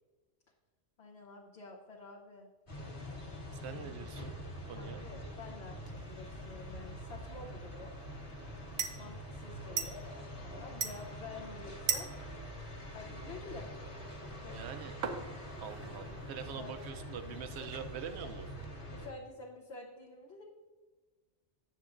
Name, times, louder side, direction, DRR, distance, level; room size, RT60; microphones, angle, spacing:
voice 1, 1.0-2.5 3.6-3.9 4.8-7.9 9.0-12.1 12.9-13.7 14.2-14.6 16.5-16.8 17.2-17.7 18.2-18.3 18.9-20.4, left 3 dB, 60° left, -4 dB, 1.2 m, -49 dB
sound 1, 2.7-19.1, left 1 dB, 45° left, 1.7 m, -45 dB
voice 2, 3.5-4.3 4.7-5.0 14.5-14.9 15.6-18.5, right 7 dB, 65° right, 9 dB, 0.8 m, -44 dB
sound 2, 5.8-18.6, right 6 dB, 90° right, 1.1 m, -43 dB
9.6 x 7.0 x 2.5 m, 1.3 s
omnidirectional pair, 1.3 m